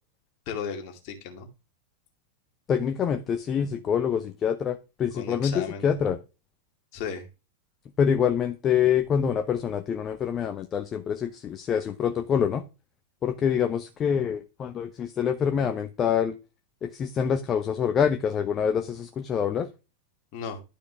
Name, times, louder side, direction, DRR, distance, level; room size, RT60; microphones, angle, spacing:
voice 1, 0.5-1.5 5.1-6.1 6.9-7.2 20.3-20.6, left 6 dB, 45° left, 2.3 m, -35 dB
voice 2, 2.7-6.2 8.0-12.6 13.2-16.4 16.8-19.7, left 8 dB, 25° left, 0.8 m, -26 dB
12.0 x 4.9 x 3.5 m
figure-of-eight pair, 90°, 0 cm